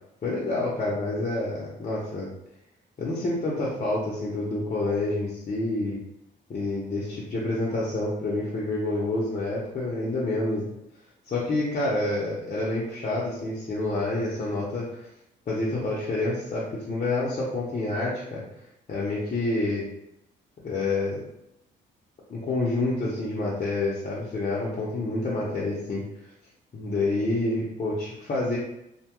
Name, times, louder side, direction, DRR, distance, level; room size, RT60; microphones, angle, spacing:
voice 1, 0.2-2.3 3.0-6.0 6.5-10.7 11.3-15.0 15.5-18.4 18.9-19.8 20.6-21.2 22.3-26.0 26.7-28.6, left 2 dB, 40° left, -7 dB, 0.7 m, -28 dB
2.7 x 2.2 x 2.9 m, 0.81 s
cardioid pair, 90°, 20 cm